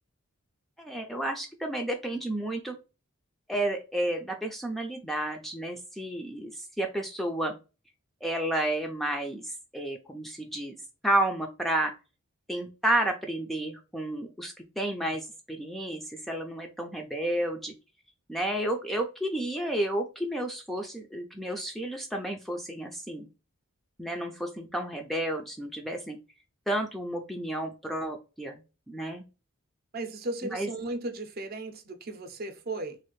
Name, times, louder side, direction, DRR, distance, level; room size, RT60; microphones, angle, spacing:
voice 1, 0.8-2.8 3.5-7.5 8.2-10.7 11.0-11.9 12.5-17.7 18.3-23.3 24.0-26.2 26.7-28.6 28.9-29.2 30.5-30.7, right 1 dB, ahead, 0.3 m, -31 dB
voice 2, 29.9-33.0, right 2 dB, 45° right, 0.6 m, -36 dB
3.2 x 2.4 x 3.0 m
head